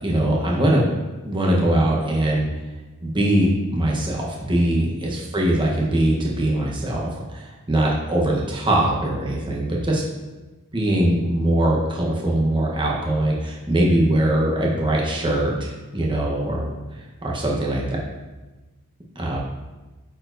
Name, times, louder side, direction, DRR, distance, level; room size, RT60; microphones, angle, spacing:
voice 1, 0.0-1.0 1.2-2.4 3.0-10.0 10.7-16.7 17.2-17.8 19.2-19.4, right 1 dB, 20° right, -3 dB, 1.0 m, -21 dB
10.5 x 4.3 x 2.6 m, 1.2 s
head